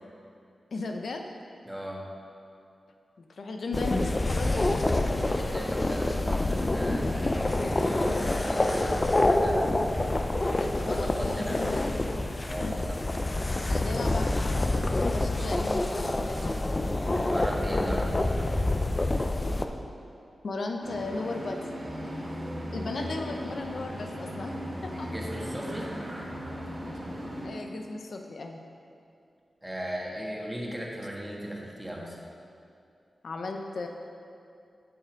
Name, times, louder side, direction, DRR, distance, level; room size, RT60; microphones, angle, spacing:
voice 1, 0.7-1.3 3.2-4.8 10.6-11.9 12.6-12.8 13.7-16.7 20.4-21.6 22.7-24.6 24.8-25.1 27.4-28.6 33.2-33.9, left 3 dB, 70° left, 3 dB, 0.6 m, -36 dB
voice 2, 1.7-2.0 5.1-9.8 10.8-11.7 12.5-13.0 17.1-18.4 22.9-23.1 24.9-25.9 29.6-32.2, equal, 10° right, -2 dB, 1.5 m, -37 dB
sound 1, 3.7-19.7, left 2 dB, 30° left, 0.5 m, -27 dB
sound 2, 20.8-27.5, equal, 35° right, 2.0 m, -37 dB
7.7 x 6.7 x 5.1 m, 2.5 s
wide cardioid pair, 80°, 0 cm